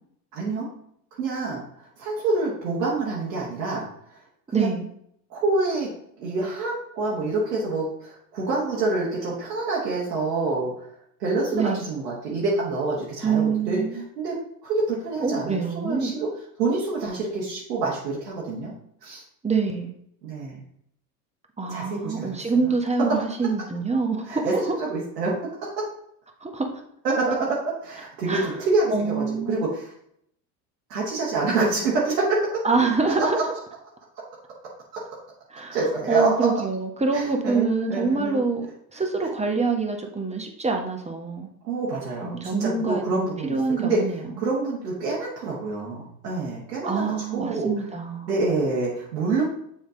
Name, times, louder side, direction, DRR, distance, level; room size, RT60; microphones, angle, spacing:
voice 1, 0.3-0.7 1.2-4.2 4.5-4.7 5.3-5.9 6.2-10.9 11.2-16.3 16.6-18.7 19.0-19.2 20.2-20.6 21.7-22.4 24.3-25.3 25.6-25.9 27.0-29.9 30.9-32.7 34.6-35.0 35.7-36.5 37.1-38.4 38.9-39.0 41.6-44.0 44.4-47.8 48.3-49.4, right 3 dB, 85° right, -5 dB, 1.4 m, -27 dB
voice 2, 4.5-4.9 11.5-11.8 13.2-14.0 15.2-16.1 19.4-19.9 21.6-24.6 26.4-26.7 28.3-28.5 28.9-29.6 32.6-33.4 35.5-35.8 36.1-41.5 42.2-44.3 46.8-48.3, right 4 dB, 15° right, 3 dB, 1.1 m, -25 dB
7.0 x 3.7 x 3.7 m, 0.72 s
hypercardioid pair, 75°, 48 cm